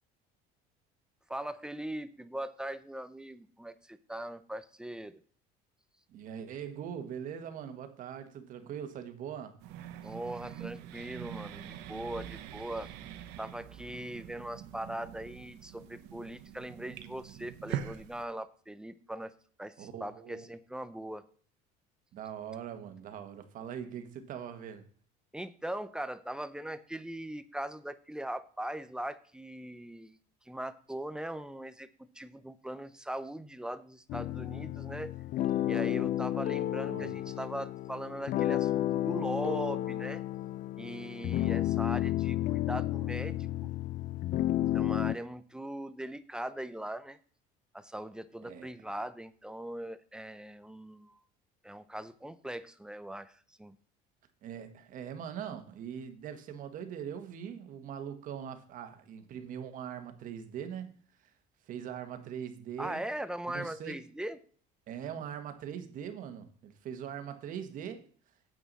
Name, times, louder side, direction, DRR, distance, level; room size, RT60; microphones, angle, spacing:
voice 1, 1.3-5.2 10.0-12.9 13.4-19.3 19.6-21.2 25.3-30.2 30.5-35.1 35.7-40.2 40.8-43.5 44.7-47.2 47.7-51.2 51.6-53.8 62.8-64.4, right 1 dB, 5° right, 0.5 m, -40 dB
voice 2, 6.1-9.6 19.8-20.4 22.1-24.9 36.9-37.2 48.4-48.7 54.4-61.0 61.2-61.3 61.7-63.0 63.5-64.0 64.9-68.1, right 8 dB, 50° right, 1.5 m, -41 dB
sound 1, 9.6-18.2, right 10 dB, 75° right, 1.1 m, -44 dB
sound 2, 34.1-45.1, left 13 dB, 45° left, 0.4 m, -32 dB
9.2 x 8.5 x 4.1 m
cardioid pair, 150°, 18 cm